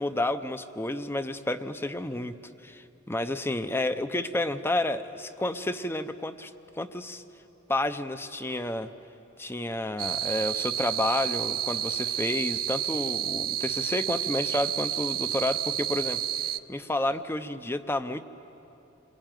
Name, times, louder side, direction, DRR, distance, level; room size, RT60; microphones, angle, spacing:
voice 1, 0.0-2.4 2.6-7.2 7.7-8.9 9.4-18.2, left 1 dB, 10° left, 11 dB, 0.7 m, -30 dB
sound 1, 10.0-16.6, right 12 dB, 45° right, 0.6 m, -30 dB
28.0 x 22.0 x 9.2 m, 3.0 s
head